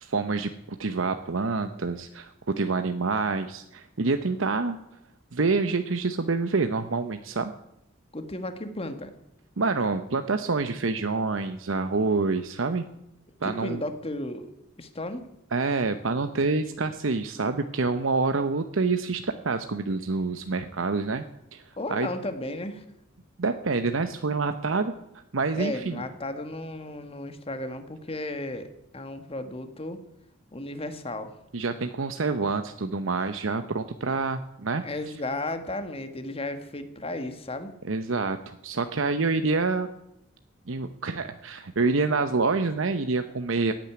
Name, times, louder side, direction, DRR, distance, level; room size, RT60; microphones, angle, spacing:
voice 1, 0.0-4.8 5.3-7.5 9.6-12.9 13.4-13.8 15.5-21.2 21.5-22.1 23.4-24.9 25.3-26.0 31.5-34.8 37.8-39.9 40.7-43.7, right 3 dB, 75° right, 8 dB, 0.8 m, -27 dB
voice 2, 8.1-9.1 13.4-14.5 14.8-15.3 21.8-22.8 25.6-28.7 28.9-30.0 30.5-31.3 34.8-37.7, left 1 dB, 30° left, 8 dB, 1.6 m, -34 dB
16.0 x 9.1 x 9.4 m, 0.82 s
head